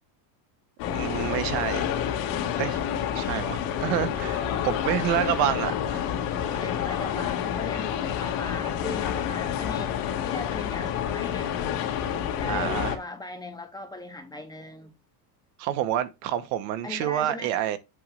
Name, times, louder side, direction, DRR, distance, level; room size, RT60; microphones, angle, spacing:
sound 1, 0.8-13.0, left 9 dB, 80° left, 1.9 m, -29 dB
voice 1, 0.9-1.8 2.6-2.8 3.1-6.1 12.5-13.0 15.6-17.8, right 12 dB, 85° right, 1.2 m, -28 dB
voice 2, 6.4-11.5 12.3-14.9 16.8-17.5, left 2 dB, 10° left, 0.6 m, -39 dB
8.1 x 3.1 x 5.4 m
cardioid pair, 165°, 48 cm